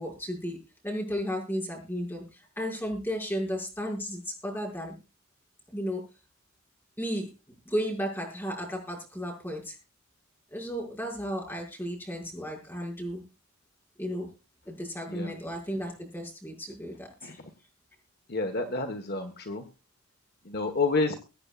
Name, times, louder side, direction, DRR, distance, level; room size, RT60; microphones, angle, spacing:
voice 1, 0.0-5.0 5.7-6.0 7.0-7.3 7.6-9.8 10.5-13.2 14.0-14.3 14.7-17.1, equal, 10° left, 0 dB, 6.1 m, -34 dB
voice 2, 18.3-19.6 20.4-21.1, left 3 dB, 45° left, 6 dB, 1.4 m, -29 dB
23.5 x 8.8 x 2.4 m, 0.31 s
head